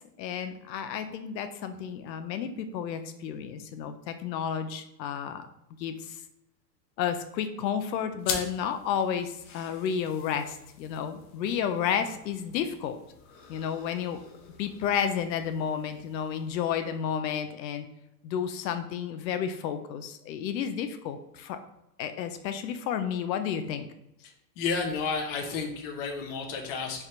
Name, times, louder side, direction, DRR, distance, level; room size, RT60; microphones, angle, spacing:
voice 1, 0.2-5.5 5.8-6.2 7.0-13.0 13.5-14.2 14.6-17.9 18.2-21.6 22.0-23.9, left 8 dB, 85° left, 8 dB, 0.6 m, -31 dB
sound 1, 8.2-17.2, left 6 dB, 60° left, 0.8 m, -43 dB
voice 2, 24.6-27.0, left 5 dB, 35° left, 2 dB, 0.6 m, -31 dB
3.3 x 2.4 x 4.2 m, 0.84 s
supercardioid pair, 145°, 49 cm